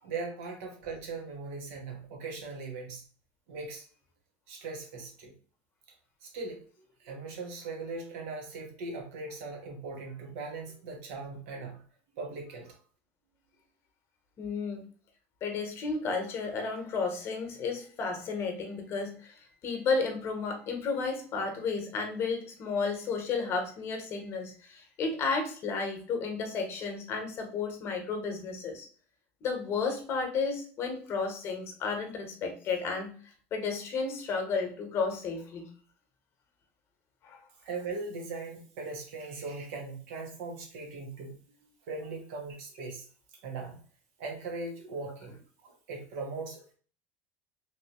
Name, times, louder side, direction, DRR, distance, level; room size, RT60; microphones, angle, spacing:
voice 1, 0.0-3.0 3.5-3.8 4.5-5.3 6.2-6.6 7.0-11.8 12.2-12.7 37.6-41.4 41.9-43.1 43.4-43.8 44.2-45.3 45.6-46.7, right 3 dB, 75° right, 1 dB, 1.2 m, -39 dB
voice 2, 14.4-14.8 15.4-28.9 29.4-35.7 37.2-37.4, left 4 dB, 35° left, 3 dB, 1.0 m, -33 dB
3.2 x 2.9 x 2.9 m, 0.42 s
supercardioid pair, 145°, 7 cm